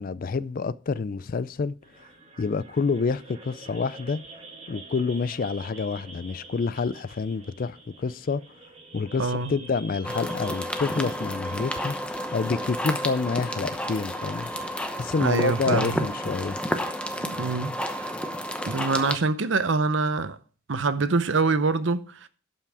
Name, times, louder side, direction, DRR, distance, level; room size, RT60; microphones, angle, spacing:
voice 1, 0.0-1.7 2.4-4.2 4.7-8.4 8.9-12.0 12.3-14.5 15.0-16.6, left 4 dB, 45° left, 0.4 m, -28 dB
sound 1, 1.8-14.8, right 2 dB, 30° right, 1.6 m, -48 dB
voice 2, 9.2-9.6 15.2-16.1 17.2-18.1 18.7-20.4 20.7-22.3, right 3 dB, 60° right, 0.7 m, -25 dB
sound 2, 10.0-19.2, equal, 5° left, 0.8 m, -31 dB
12.0 x 5.8 x 4.8 m
head